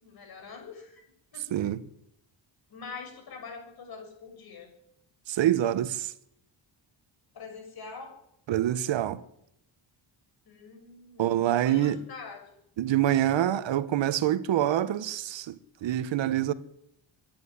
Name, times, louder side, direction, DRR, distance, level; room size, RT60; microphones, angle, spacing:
voice 1, 0.0-1.0 1.3-1.5 2.7-4.7 7.3-8.2 10.5-12.6, left 5 dB, 50° left, 6.7 m, -44 dB
voice 2, 1.5-1.8 5.3-6.1 8.5-9.2 11.2-12.0 12.8-15.5 15.8-16.5, right 12 dB, 70° right, 1.2 m, -26 dB
25.0 x 11.0 x 9.7 m
wide cardioid pair, 175°, 46 cm